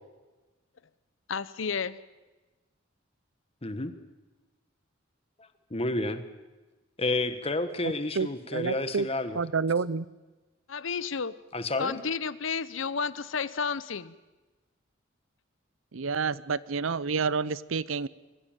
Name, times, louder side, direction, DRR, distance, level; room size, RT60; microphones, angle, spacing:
voice 1, 1.3-2.0 10.7-11.3 11.8-14.2, left 5 dB, 70° left, 0.8 m, -31 dB
voice 2, 3.6-3.9 5.7-6.2 7.0-9.4 11.5-12.0, left 2 dB, 30° left, 1.4 m, -30 dB
voice 3, 7.8-9.1 9.3-10.1 15.9-18.1, right 5 dB, 85° right, 0.7 m, -29 dB
24.0 x 15.5 x 9.0 m
head